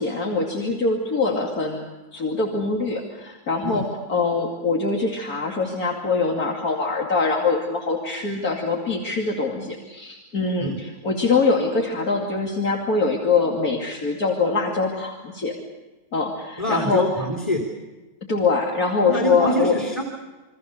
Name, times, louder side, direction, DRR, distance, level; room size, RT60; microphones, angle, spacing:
voice 1, 0.0-1.8 2.1-15.5 16.1-17.1 18.2-19.8, left 4 dB, 85° left, -1 dB, 3.1 m, -23 dB
voice 2, 16.6-17.6 19.0-20.0, equal, 20° left, 0 dB, 3.0 m, -25 dB
28.0 x 24.0 x 6.7 m, 1.2 s
omnidirectional pair, 1.5 m